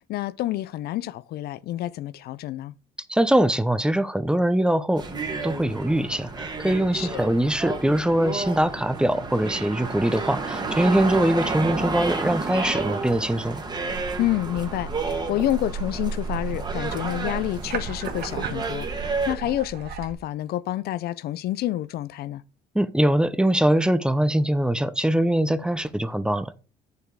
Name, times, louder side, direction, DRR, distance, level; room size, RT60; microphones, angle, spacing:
voice 1, 0.1-2.7 6.9-7.2 14.2-22.4, left 14 dB, 70° left, 0.5 m, -28 dB
voice 2, 3.1-5.0 5.4-13.6 22.7-26.5, right 1 dB, 5° right, 0.7 m, -22 dB
sound 1, 5.0-19.4, right 3 dB, 25° right, 1.7 m, -31 dB
sound 2, 13.9-20.1, right 5 dB, 70° right, 1.9 m, -34 dB
8.7 x 6.9 x 4.7 m
cardioid pair, 110°, 17 cm